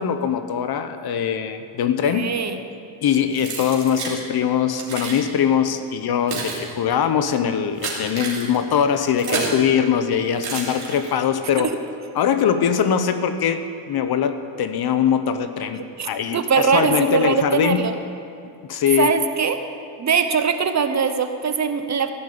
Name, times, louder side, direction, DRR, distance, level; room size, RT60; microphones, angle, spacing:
voice 1, 0.0-2.3 3.0-11.7 12.1-17.8 18.7-19.1, left 8 dB, 50° left, 10 dB, 0.9 m, -22 dB
voice 2, 2.1-2.6 9.3-9.6 11.6-11.7 16.0-17.9 19.0-19.6 20.0-22.1, right 6 dB, 35° right, 8 dB, 0.9 m, -21 dB
Keys jangling, 3.3-4.2 4.7-5.2 5.9-9.6 10.4-11.3, right 4 dB, 50° right, 3.2 m, -30 dB
15.0 x 6.6 x 8.6 m, 2.4 s
cardioid pair, 115°, 50 cm